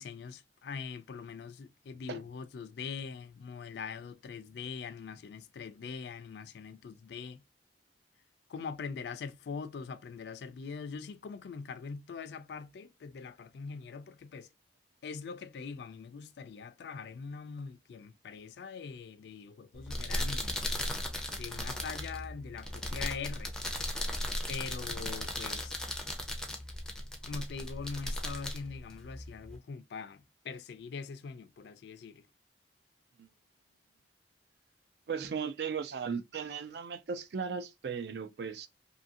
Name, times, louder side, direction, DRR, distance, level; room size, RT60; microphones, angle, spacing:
voice 1, 0.0-7.4 8.5-14.5 15.0-20.6 21.4-23.5 24.5-25.8 27.3-32.3, left 5 dB, 70° left, 0.3 m, -42 dB
sound 1, 19.7-29.6, left 1 dB, 5° left, 0.4 m, -37 dB
voice 2, 35.1-38.7, right 6 dB, 65° right, 0.4 m, -37 dB
2.6 x 2.5 x 2.6 m
head